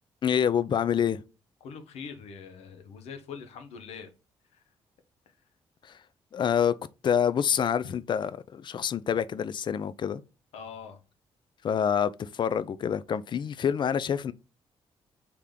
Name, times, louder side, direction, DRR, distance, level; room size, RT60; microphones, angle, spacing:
voice 1, 0.2-1.2 5.8-6.0 6.3-6.8 7.0-10.2 11.6-14.3, left 8 dB, 50° left, 0.4 m, -27 dB
voice 2, 1.6-4.1 4.5-4.6 7.8-7.9 10.5-11.0, left 6 dB, 90° left, 0.7 m, -43 dB
3.4 x 2.9 x 3.7 m
cardioid pair, 75°, 10 cm